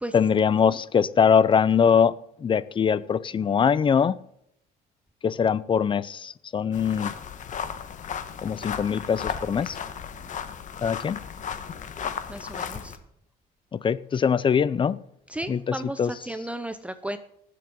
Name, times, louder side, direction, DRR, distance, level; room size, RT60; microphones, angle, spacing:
voice 1, 0.1-4.2 5.2-7.1 8.4-9.8 10.8-11.2 13.7-15.0 15.5-16.1, left 7 dB, 30° left, 0.5 m, -22 dB
sound 1, 6.7-13.0, left 7 dB, 50° left, 1.3 m, -35 dB
voice 2, 12.3-13.0 15.3-17.2, right 1 dB, 5° right, 0.8 m, -34 dB
19.0 x 7.7 x 3.8 m
cardioid pair, 110°, 17 cm